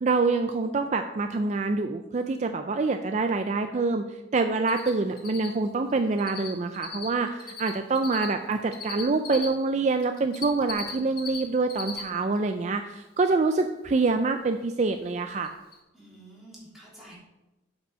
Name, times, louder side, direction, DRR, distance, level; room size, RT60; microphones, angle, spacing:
voice 1, 0.0-4.0 4.3-15.5, right 3 dB, 40° right, 7 dB, 0.4 m, -26 dB
Cricket, 4.7-4.9 5.2-6.5 6.7-9.5 10.0-11.4 11.6-12.0 12.4-12.5 15.0-15.1 15.4-15.5 15.7-15.8, left 6 dB, 55° left, 1.5 m, -37 dB
voice 2, 15.9-17.2, right 1 dB, ahead, -7 dB, 3.0 m, -49 dB
7.9 x 5.2 x 6.2 m, 1.0 s
head